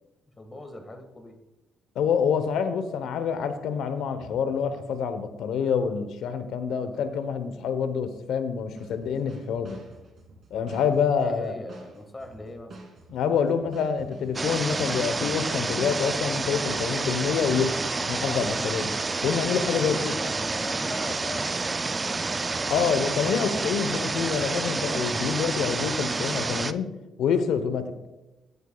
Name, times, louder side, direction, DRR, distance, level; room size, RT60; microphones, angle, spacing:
voice 1, 0.4-1.3 11.1-12.8 19.5-22.2, left 1 dB, 25° left, 5 dB, 1.8 m, -40 dB
voice 2, 2.0-9.8 10.5-11.5 13.1-17.7 18.0-18.9 19.2-20.1 22.7-26.9 27.2-27.9, left 6 dB, 80° left, 10 dB, 0.9 m, -27 dB
sound 1, 8.7-24.1, right 2 dB, 55° right, 2.1 m, -48 dB
sound 2, 14.3-26.7, right 3 dB, 25° right, 0.4 m, -29 dB
16.0 x 8.1 x 2.3 m, 1.0 s
cardioid pair, 90°, 0 cm